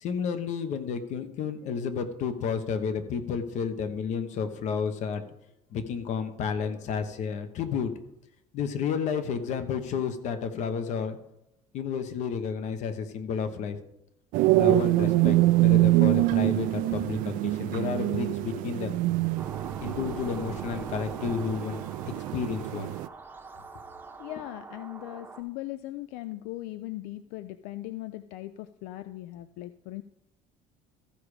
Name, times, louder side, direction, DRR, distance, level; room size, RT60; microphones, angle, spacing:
voice 1, 0.0-5.2 5.7-7.9 8.5-11.2 11.7-13.8 14.6-18.9 19.8-21.8 22.3-22.9, left 6 dB, 55° left, 10 dB, 1.0 m, -31 dB
sound 1, 14.3-23.1, right 17 dB, 70° right, 0.4 m, -25 dB
sound 2, 19.4-25.4, right 3 dB, 15° right, 0.8 m, -43 dB
voice 2, 24.2-30.0, left 16 dB, 80° left, 12 dB, 0.4 m, -39 dB
14.0 x 4.9 x 4.9 m, 0.85 s
cardioid pair, 135°, 14 cm